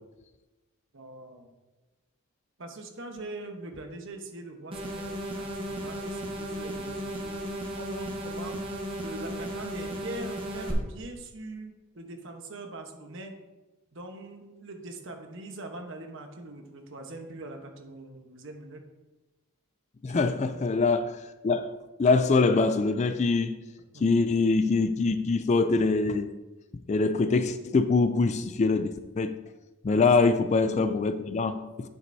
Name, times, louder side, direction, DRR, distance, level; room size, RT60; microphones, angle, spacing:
voice 1, 0.9-1.5 2.6-7.4 7.8-8.7 9.0-13.3 13.9-18.8 20.1-20.2 23.9-24.0 29.9-30.1, right 2 dB, 55° right, 1.1 m, -42 dB
sound 1, 4.7-10.7, right 1 dB, 25° right, 1.1 m, -35 dB
voice 2, 20.0-23.6 24.0-26.4 26.9-29.4 29.8-31.9, left 3 dB, 30° left, 0.3 m, -24 dB
8.9 x 7.6 x 2.7 m
head